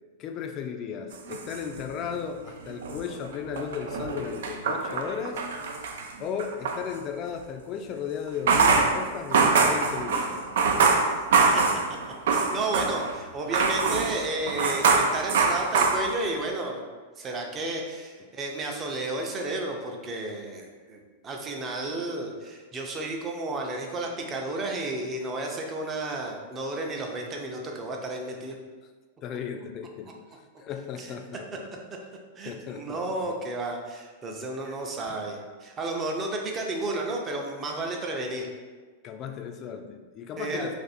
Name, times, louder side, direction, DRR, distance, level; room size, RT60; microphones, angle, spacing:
voice 1, 0.2-5.4 6.2-10.4 29.2-30.1 30.6-31.7 32.4-33.4 35.1-35.2 39.0-40.7, left 7 dB, 35° left, 6 dB, 0.3 m, -35 dB
sound 1, 1.1-2.3 2.7-6.8 8.3-13.2 13.5-16.5, right 4 dB, 75° right, 0.4 m, -24 dB
voice 2, 10.8-11.1 11.5-11.6 11.9-12.0 12.3-16.8 17.2-28.6 31.0-31.1 32.4-38.5 40.4-40.7, right 2 dB, 25° right, 1 dB, 0.5 m, -32 dB
2.6 x 2.5 x 4.1 m, 1.4 s
hypercardioid pair, 130°, 0 cm